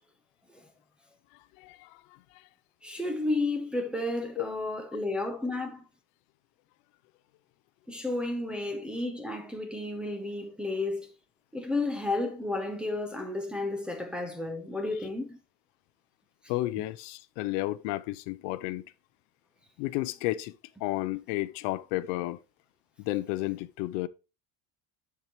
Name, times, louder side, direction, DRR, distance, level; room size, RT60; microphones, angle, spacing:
voice 1, 1.6-2.0 4.4-4.5 16.5-18.8 19.8-20.5 20.8-22.4 23.0-24.1, left 18 dB, 90° left, 0.7 m, -32 dB
voice 2, 2.8-5.8 7.9-11.1 11.5-15.4, left 2 dB, ahead, 0.7 m, -32 dB
12.0 x 4.8 x 3.0 m
cardioid pair, 170°, 49 cm